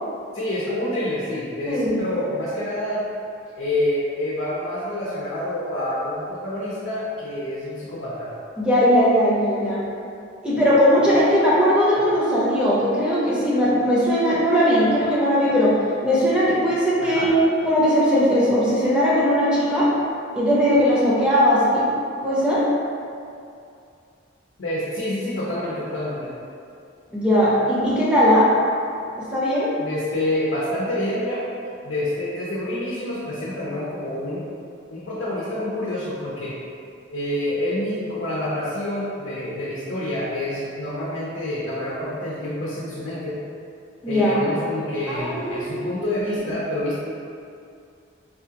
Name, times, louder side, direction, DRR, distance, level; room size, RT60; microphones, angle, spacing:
voice 1, 0.3-3.0 3.6-8.3 17.0-17.3 24.6-26.3 29.8-31.4 31.8-34.4 34.9-36.5 37.1-43.4 44.1-47.0, left 1 dB, 85° left, -8 dB, 0.7 m, -27 dB
voice 2, 8.6-9.8 10.4-15.8 16.0-17.4 17.6-19.9 20.3-21.9 22.2-22.6 27.1-28.5 29.2-29.7 44.0-44.4 45.1-45.9, equal, 5° right, -8 dB, 0.6 m, -19 dB
4.1 x 2.4 x 2.8 m, 2.4 s
head